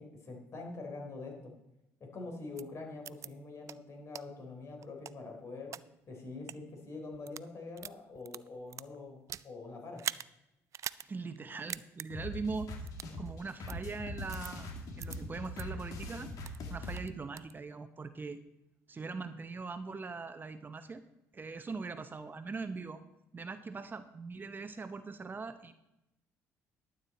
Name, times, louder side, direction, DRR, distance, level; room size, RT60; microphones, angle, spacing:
voice 1, 0.0-1.5 2.0-5.8 6.1-10.1, left 3 dB, 50° left, 2 dB, 3.6 m, -45 dB
sound 1, 2.6-2.7 3.0-3.3 3.7-3.8 4.1-4.2 4.8-5.8 6.4-6.6 7.1-7.5 7.8-9.5 10.0-10.3 10.7-11.1 11.4-11.5 11.7-12.1 12.9-13.1 13.7-13.8 14.3-14.5 15.0-15.2 15.6-15.7 16.1-16.6 17.0-17.5, right 10 dB, 55° right, 0.3 m, -41 dB
voice 2, 11.1-12.7 13.2-14.7 15.0-16.3 16.7-18.4 18.9-21.0 21.3-23.0 23.3-25.7, right 4 dB, 30° right, 10 dB, 0.8 m, -41 dB
sound 2, 12.1-17.0, left 2 dB, 65° left, 2.0 m, -42 dB
12.0 x 8.8 x 4.2 m, 0.90 s
supercardioid pair, 80°, 6 cm